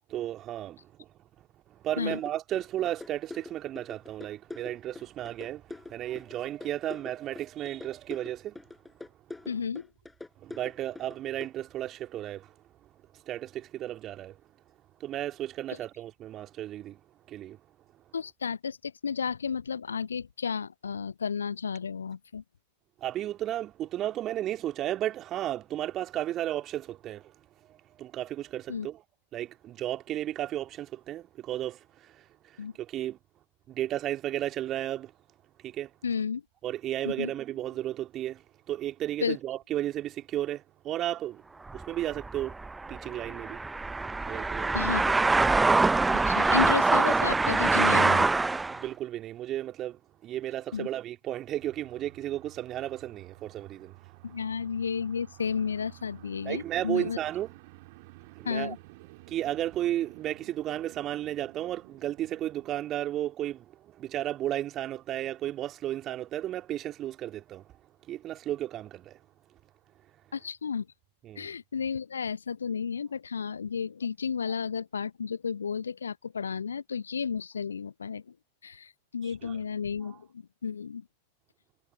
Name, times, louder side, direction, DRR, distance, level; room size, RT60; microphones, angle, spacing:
voice 1, 0.1-0.8 1.8-5.6 5.9-8.6 10.4-12.5 13.3-14.4 15.0-17.0 17.3-17.6 23.0-27.3 28.0-29.0 29.3-32.1 32.8-33.2 33.7-35.1 35.6-35.9 36.6-38.4 38.7-41.4 41.7-42.6 42.9-43.6 44.3-44.9 48.7-53.9 56.4-57.5 58.4-58.7 59.3-67.6 68.1-69.2 71.2-71.5 79.4-79.6, right 13 dB, 30° right, 2.1 m, -33 dB
sound 1, 2.1-11.5, left 2 dB, 10° left, 5.1 m, -44 dB
voice 2, 9.5-9.9 18.1-22.4 28.7-28.9 32.6-32.7 36.0-36.4 37.0-37.3 39.2-39.4 44.7-45.1 46.3-48.3 50.7-50.9 54.2-57.2 58.4-58.8 70.3-70.9 71.4-78.2 78.6-80.3 80.6-81.0, left 6 dB, 70° left, 0.8 m, -32 dB
sound 2, 41.7-48.8, right 3 dB, 10° right, 0.5 m, -24 dB
sound 3, 51.6-62.8, right 24 dB, 50° right, 2.5 m, -52 dB
figure-of-eight pair, 90°, 0 cm